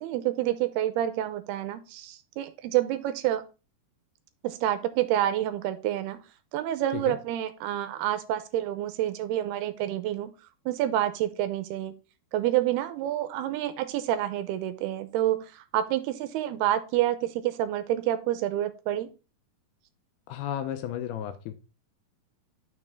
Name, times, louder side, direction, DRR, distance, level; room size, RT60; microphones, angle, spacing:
voice 1, 0.0-3.4 4.4-6.2 6.5-10.3 10.7-11.9 12.3-19.1, right 13 dB, 80° right, 2.6 m, -28 dB
voice 2, 20.3-21.5, left 10 dB, 80° left, 2.4 m, -33 dB
9.0 x 6.3 x 3.6 m
omnidirectional pair, 4.9 m